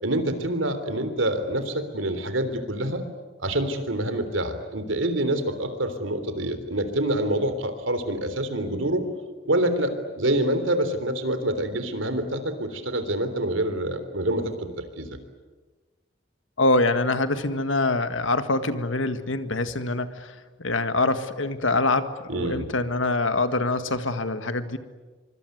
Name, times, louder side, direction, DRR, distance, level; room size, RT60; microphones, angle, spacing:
voice 1, 0.0-3.1 3.4-9.0 9.5-15.2 22.3-22.7, right 1 dB, 85° right, 9 dB, 3.6 m, -26 dB
voice 2, 16.6-24.8, left 2 dB, 85° left, 10 dB, 1.8 m, -25 dB
25.5 x 24.5 x 9.4 m, 1.3 s
head